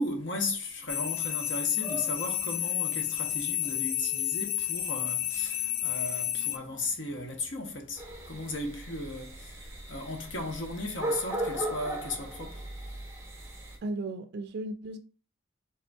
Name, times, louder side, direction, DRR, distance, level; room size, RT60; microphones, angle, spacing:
voice 1, 0.0-12.7, left 2 dB, 65° left, 0.9 m, -36 dB
sound 1, 0.9-6.6, left 12 dB, 50° left, 0.5 m, -31 dB
sound 2, 1.8-8.2, left 1 dB, 85° left, 2.2 m, -51 dB
sound 3, 8.0-13.8, right 1 dB, 15° right, 0.8 m, -37 dB
voice 2, 13.8-15.0, right 2 dB, 55° right, 0.3 m, -35 dB
5.1 x 3.6 x 2.3 m
head